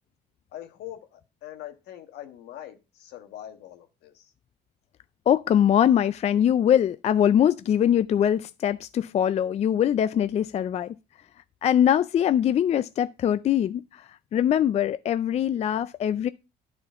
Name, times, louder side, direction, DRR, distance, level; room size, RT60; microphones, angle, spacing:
voice 1, 0.5-4.3, left 12 dB, 80° left, 1.5 m, -43 dB
voice 2, 5.3-10.9 11.6-14.0 14.3-16.3, left 10 dB, 40° left, 0.4 m, -22 dB
10.5 x 4.4 x 5.5 m
cardioid pair, 110°, 17 cm